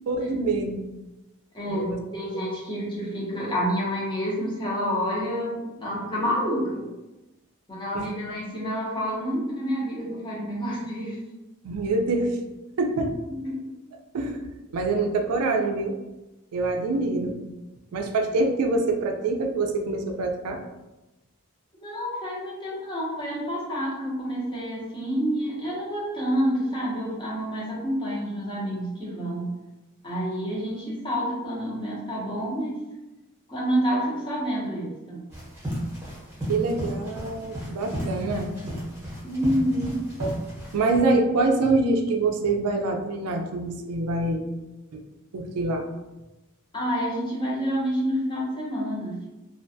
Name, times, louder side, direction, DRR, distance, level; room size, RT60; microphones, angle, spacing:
voice 1, 0.1-0.8 1.7-2.0 7.9-8.1 11.6-12.4 12.8-13.2 14.1-14.4 14.7-16.0 16.5-17.4 17.9-20.6 36.5-38.6 40.2-40.3 40.7-44.4 44.9-45.0 45.3-45.8, right 3 dB, 90° right, 4 dB, 0.4 m, -25 dB
voice 2, 1.5-6.9 7.7-11.2 13.3-13.6 21.8-29.5 30.0-32.8 33.5-35.2 39.2-40.0 46.7-49.3, equal, 20° left, -5 dB, 0.7 m, -28 dB
sound 1, 35.3-41.0, equal, 10° right, 0.9 m, -34 dB
2.4 x 2.2 x 2.6 m, 1.0 s
head